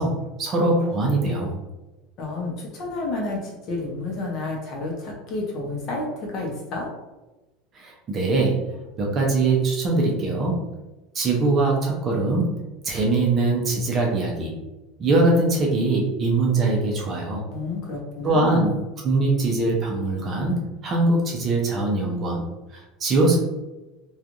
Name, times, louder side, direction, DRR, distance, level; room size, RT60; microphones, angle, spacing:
voice 1, 0.0-1.6 7.7-8.6 9.0-10.6 11.1-14.6 15.0-17.4 18.2-22.4 22.7-23.4, right 2 dB, 25° right, -1 dB, 0.6 m, -22 dB
voice 2, 2.2-6.9 17.5-18.7, left 2 dB, 40° left, -1 dB, 0.7 m, -30 dB
3.1 x 2.3 x 2.5 m, 1.1 s
cardioid pair, 165°, 0 cm